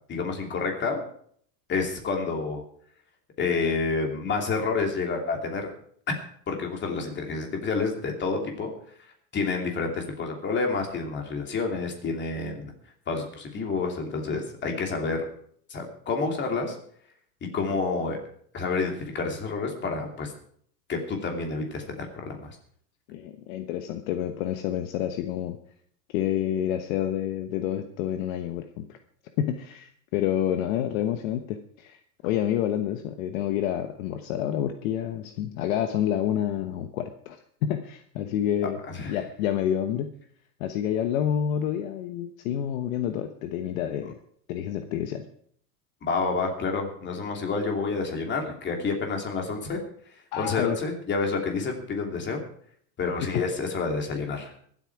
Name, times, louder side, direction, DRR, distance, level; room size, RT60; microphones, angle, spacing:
voice 1, 0.1-1.0 1.7-2.6 3.4-5.7 6.1-6.2 6.5-8.7 9.3-12.7 13.1-15.2 15.7-16.7 17.5-18.2 18.5-20.3 20.9-22.5 38.9-39.2 46.0-49.8 50.4-52.4 53.0-54.5, left 4 dB, 20° left, 2 dB, 2.9 m, -29 dB
voice 2, 23.1-25.6 26.1-29.0 29.4-32.0 32.2-37.4 37.6-40.1 40.6-44.2 44.5-45.2 50.3-50.8 53.3-53.4, left 10 dB, 55° left, 7 dB, 1.2 m, -28 dB
24.0 x 8.4 x 4.8 m, 0.62 s
supercardioid pair, 155°, 48 cm